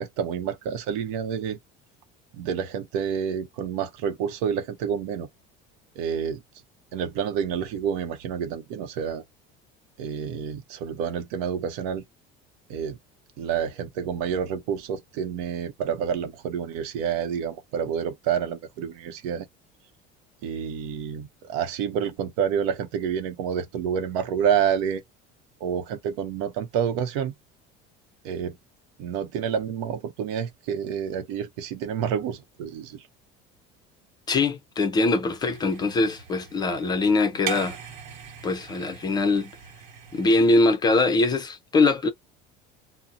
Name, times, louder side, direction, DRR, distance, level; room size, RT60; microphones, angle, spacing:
voice 1, 0.0-1.6 2.4-5.3 6.0-6.4 6.9-9.2 10.0-12.0 12.7-13.0 13.4-19.5 20.4-25.0 25.6-27.3 28.2-28.5 29.0-33.0, right 8 dB, 90° right, 0.7 m, -28 dB
voice 2, 34.3-37.8 38.4-39.5 40.1-42.1, left 3 dB, 20° left, 0.4 m, -22 dB
sound 1, 35.4-40.5, right 8 dB, 60° right, 1.2 m, -40 dB
2.7 x 2.0 x 3.5 m
cardioid pair, 170°, 21 cm